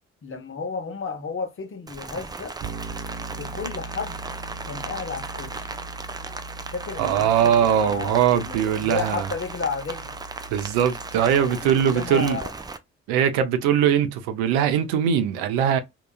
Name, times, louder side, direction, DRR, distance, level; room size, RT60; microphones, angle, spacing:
voice 1, 0.2-2.6 3.4-4.2 4.6-5.7 6.7-10.1 11.2-12.5, left 5 dB, 35° left, 0.9 m, -32 dB
Rain, 1.9-12.8, right 3 dB, 10° right, 0.4 m, -37 dB
Bass guitar, 2.6-12.5, right 2 dB, 45° right, 1.0 m, -40 dB
voice 2, 7.0-9.2 10.5-12.4 13.1-15.8, right 9 dB, 65° right, 0.6 m, -21 dB
2.8 x 2.2 x 2.3 m
figure-of-eight pair, 40°, 38 cm